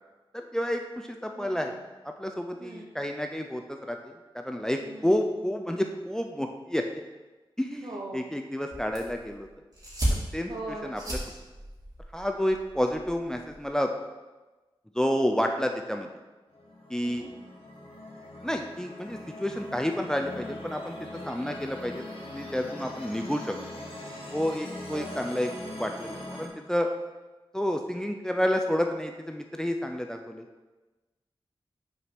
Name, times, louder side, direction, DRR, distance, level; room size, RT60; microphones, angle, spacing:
voice 1, 0.3-1.7 2.2-7.1 7.6-9.5 10.3-10.5 10.8-11.2 12.1-13.9 14.9-16.1 16.9-17.3 18.4-21.0 21.3-22.0 22.3-23.5 24.3-25.5 25.8-26.9 27.5-30.4, equal, 5° left, 4 dB, 0.5 m, -30 dB
voice 2, 1.3-1.8 2.6-2.9 4.8-5.3 7.8-8.3 10.5-11.4 15.5-15.6 17.0-17.3 24.9-25.2, right 2 dB, 70° right, -3 dB, 0.9 m, -41 dB
sound 1, 8.7-13.7, right 1 dB, 40° right, 2.7 m, -35 dB
sound 2, 16.5-26.5, left 1 dB, 90° left, 1.5 m, -41 dB
6.3 x 4.7 x 5.9 m, 1.2 s
wide cardioid pair, 80°, 9 cm